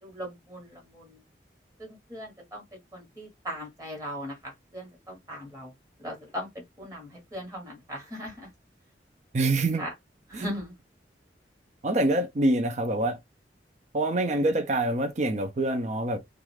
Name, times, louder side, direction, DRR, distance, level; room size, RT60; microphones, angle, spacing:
voice 1, 0.0-1.2 1.8-5.7 6.0-8.5 9.8-9.9 10.3-10.7, equal, 20° right, 1.2 m, -39 dB
voice 2, 9.3-9.8 10.3-10.4 11.8-13.2 13.9-16.2, right 2 dB, 40° right, 0.5 m, -25 dB
2.4 x 2.4 x 3.1 m
head